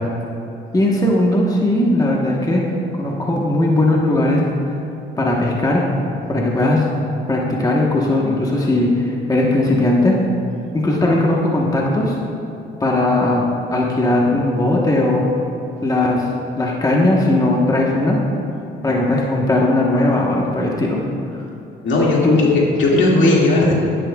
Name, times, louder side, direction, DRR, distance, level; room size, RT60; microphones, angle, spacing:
voice 1, 0.7-2.6 3.0-4.4 5.2-5.8 6.3-6.8 7.3-10.1 10.7-12.2 12.8-15.3 15.8-16.3 16.5-18.2 18.8-21.0 21.3-21.4 22.2-22.4, left 1 dB, 20° left, -2 dB, 1.2 m, -18 dB
voice 2, 21.8-23.7, left 2 dB, 70° left, -3 dB, 2.2 m, -16 dB
11.5 x 10.0 x 2.4 m, 2.9 s
cardioid pair, 90°, 20 cm